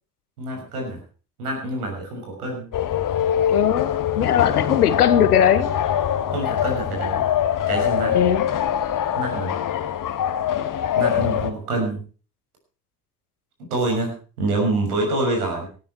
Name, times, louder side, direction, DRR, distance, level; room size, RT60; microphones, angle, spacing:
voice 1, 0.4-1.0 1.4-2.7 6.3-7.2 7.7-8.2 9.2-9.5 10.9-12.0 13.7-15.7, right 2 dB, 80° right, 6.5 m, -26 dB
sound 1, 2.7-11.5, left 9 dB, 45° left, 1.8 m, -23 dB
voice 2, 3.5-5.7 8.1-8.5, left 9 dB, 85° left, 1.2 m, -19 dB
18.5 x 12.5 x 4.6 m
hypercardioid pair, 55°, 45 cm